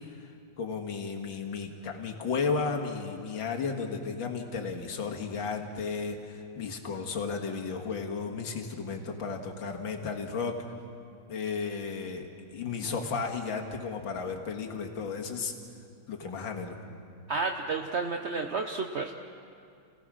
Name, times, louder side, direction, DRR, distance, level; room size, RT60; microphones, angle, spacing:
voice 1, 0.6-10.6 11.3-15.5 16.1-16.8, left 5 dB, 65° left, 2 dB, 2.5 m, -34 dB
voice 2, 17.3-19.1, right 4 dB, 60° right, 4 dB, 0.7 m, -31 dB
29.0 x 17.5 x 6.3 m, 2.4 s
omnidirectional pair, 2.3 m